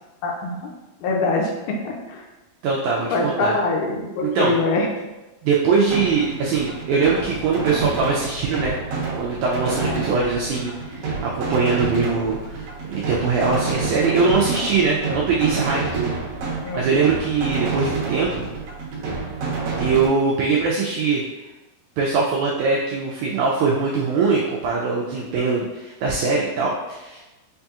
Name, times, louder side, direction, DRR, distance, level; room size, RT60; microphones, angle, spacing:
voice 1, 0.2-0.7 1.0-2.3 3.1-4.9 9.8-10.0 16.6-16.8, left 3 dB, 80° left, 0 dB, 2.2 m, -24 dB
voice 2, 2.6-3.5 4.2-4.6 5.4-8.8 9.2-16.2 16.7-18.5 19.8-21.2 22.0-27.2, right 4 dB, 85° right, -4 dB, 1.7 m, -22 dB
sound 1, 5.9-20.1, right 4 dB, 65° right, 1.6 m, -28 dB
5.9 x 2.7 x 2.3 m, 1.1 s
omnidirectional pair, 4.0 m